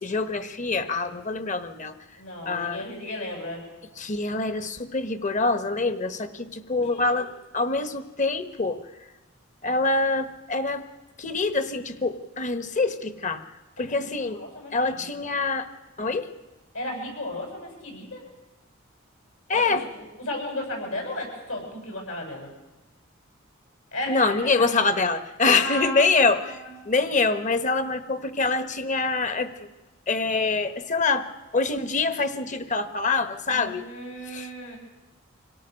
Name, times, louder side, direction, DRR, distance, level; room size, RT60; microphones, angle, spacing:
voice 1, 0.0-1.9 2.5-2.8 4.0-7.3 7.5-8.8 9.6-10.8 11.2-13.4 13.8-14.4 14.7-15.7 16.0-16.3 19.5-19.8 24.1-26.6 26.9-29.5 30.1-31.3 31.5-33.8 34.3-34.5, left 3 dB, 35° left, 10 dB, 1.2 m, -25 dB
voice 2, 2.2-3.6 6.9-7.3 13.8-15.1 16.7-18.2 19.5-22.5 23.9-24.3 25.5-26.7 33.5-34.8, left 1 dB, 75° left, 1 dB, 7.3 m, -35 dB
26.0 x 17.5 x 6.4 m, 1.1 s
head